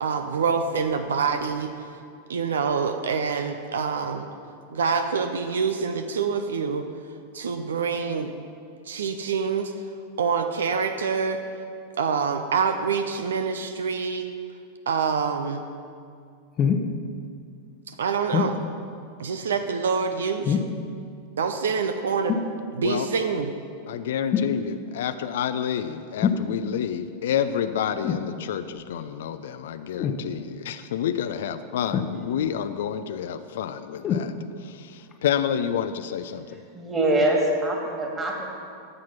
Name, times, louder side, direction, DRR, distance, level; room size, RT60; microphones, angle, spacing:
voice 1, 0.0-1.9 2.3-4.3 4.7-6.8 7.3-8.3 8.9-9.7 10.2-11.4 12.0-14.3 14.9-15.6 17.9-18.6 19.2-20.6 21.4-22.3 22.7-23.5, right 5 dB, 65° right, 7 dB, 0.6 m, -26 dB
sound 1, 16.6-16.9 18.3-18.6 20.4-20.8 22.3-22.5 24.3-24.6 26.2-26.5 28.0-28.3 30.0-30.2 31.9-32.5 34.0-34.3 35.1-35.2, left 7 dB, 30° left, 0.9 m, -24 dB
voice 2, 23.9-34.3 34.6-36.6, left 9 dB, 60° left, 11 dB, 0.5 m, -29 dB
voice 3, 36.7-38.5, right 1 dB, 15° right, 0 dB, 2.3 m, -23 dB
13.5 x 7.6 x 5.7 m, 2.3 s
figure-of-eight pair, 90°, 0 cm